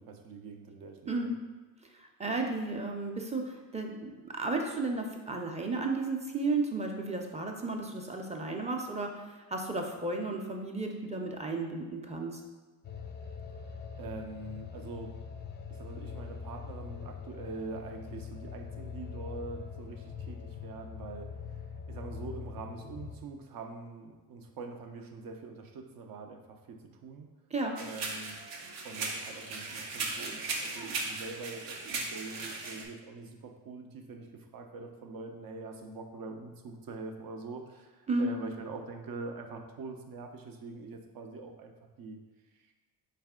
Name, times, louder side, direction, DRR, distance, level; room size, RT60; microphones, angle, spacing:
voice 1, 0.0-1.3 14.0-15.2 15.7-27.3 27.8-28.4 28.8-42.2 42.5-42.7, right 3 dB, 55° right, 4 dB, 0.7 m, -44 dB
voice 2, 2.0-12.4 27.5-27.8 38.1-38.3, right 3 dB, 15° right, 2 dB, 0.6 m, -33 dB
sound 1, 12.8-23.2, left 6 dB, 25° left, 0.5 m, -43 dB
sound 2, 27.8-32.8, right 3 dB, 80° right, 0.8 m, -37 dB
4.1 x 3.3 x 3.6 m, 1.3 s
supercardioid pair, 75°, 43 cm